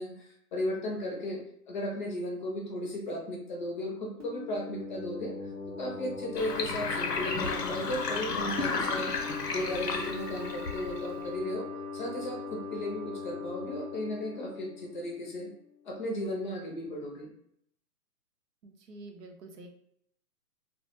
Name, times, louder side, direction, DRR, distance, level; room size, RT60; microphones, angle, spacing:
voice 1, 0.0-1.4 1.7-5.5 5.8-11.7 11.9-15.5 15.8-17.3, left 1 dB, 30° left, 0 dB, 0.5 m, -35 dB
sound 1, 4.2-15.6, left 4 dB, 20° right, 0.5 m, -40 dB
Sink (filling or washing), 6.4-11.3, left 4 dB, 85° left, 0.7 m, -33 dB
voice 2, 18.6-19.7, right 2 dB, 85° right, 3 dB, 0.7 m, -47 dB
2.2 x 2.2 x 2.8 m, 0.71 s
hypercardioid pair, 130°, 47 cm